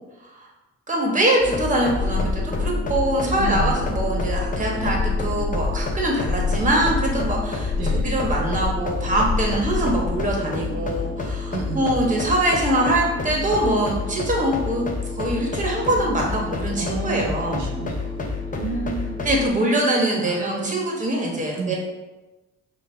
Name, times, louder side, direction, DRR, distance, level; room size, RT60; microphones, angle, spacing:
voice 1, 0.9-17.7 19.2-21.8, right 1 dB, 25° right, -1 dB, 1.1 m, -23 dB
sound 1, 1.4-19.5, left 4 dB, 25° left, 0.6 m, -29 dB
sound 2, 1.9-10.4, left 3 dB, 90° left, 0.5 m, -27 dB
voice 2, 3.4-3.9 7.8-8.1 11.5-12.1 16.8-19.2 20.2-20.6 21.3-21.7, right 5 dB, 85° right, 1 dB, 0.6 m, -32 dB
5.2 x 2.2 x 3.2 m, 1.1 s
cardioid pair, 90°, 30 cm